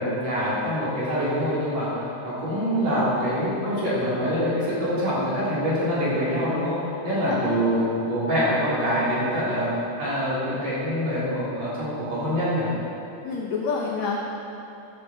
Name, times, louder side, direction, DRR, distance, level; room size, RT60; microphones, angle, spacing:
voice 1, 0.0-9.7 10.0-12.7, equal, 45° right, -9 dB, 4.7 m, -25 dB
voice 2, 7.1-7.5 13.2-14.2, left 5 dB, 75° left, -1 dB, 1.6 m, -28 dB
15.0 x 11.0 x 4.5 m, 2.9 s
omnidirectional pair, 4.5 m